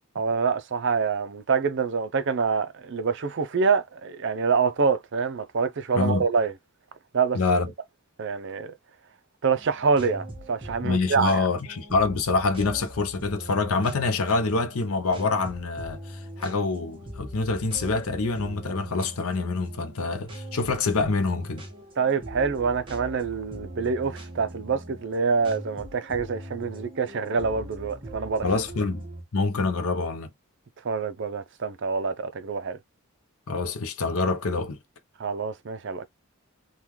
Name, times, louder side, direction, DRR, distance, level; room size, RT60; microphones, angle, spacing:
voice 1, 0.2-6.5 7.1-7.4 8.2-8.7 9.4-11.5 22.0-28.5 30.8-32.8 35.2-36.1, right 5 dB, 55° right, 0.5 m, -26 dB
voice 2, 7.3-7.7 10.8-21.6 28.4-29.0 29.3-30.3 33.5-34.8, left 3 dB, 75° left, 0.7 m, -26 dB
sound 1, 9.6-29.2, right 1 dB, 25° right, 1.1 m, -41 dB
3.7 x 2.3 x 3.0 m
head